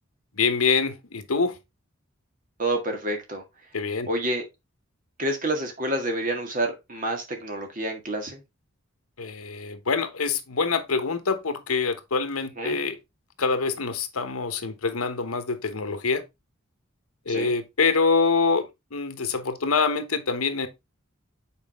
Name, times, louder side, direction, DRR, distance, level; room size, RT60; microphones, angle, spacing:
voice 1, 0.4-1.6 3.7-4.1 9.2-13.0 13.4-16.2 17.3-18.6 18.9-20.7, left 4 dB, 90° left, 1.1 m, -25 dB
voice 2, 2.6-3.4 4.1-4.4 5.2-8.4 12.6-12.8 17.3-17.5, right 1 dB, 40° right, 1.9 m, -28 dB
7.3 x 4.9 x 3.5 m
head